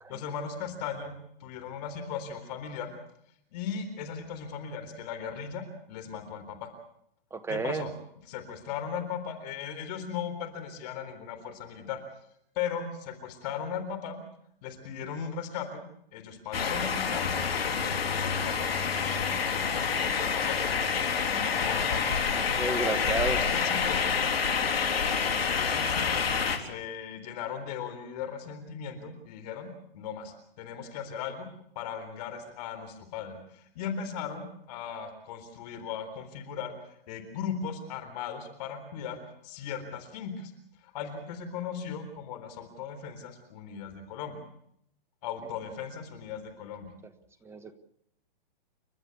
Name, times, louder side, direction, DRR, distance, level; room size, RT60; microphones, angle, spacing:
voice 1, 0.1-1.1 1.4-2.9 3.5-6.7 7.5-7.9 8.3-12.0 12.6-14.2 14.6-15.8 16.1-18.7 19.5-20.6 21.1-22.9 23.3-24.0 25.2-26.2 26.6-31.5 31.8-36.7 37.1-39.2 39.4-40.5 40.8-44.4 45.2-46.9, left 7 dB, 45° left, 8 dB, 3.9 m, -38 dB
voice 2, 7.3-7.9 22.3-23.4 47.4-47.8, right 3 dB, 10° right, 10 dB, 1.2 m, -32 dB
sound 1, 16.5-26.6, left 6 dB, 75° left, 3.4 m, -28 dB
30.0 x 13.0 x 8.3 m, 0.75 s
hypercardioid pair, 135°, 30 cm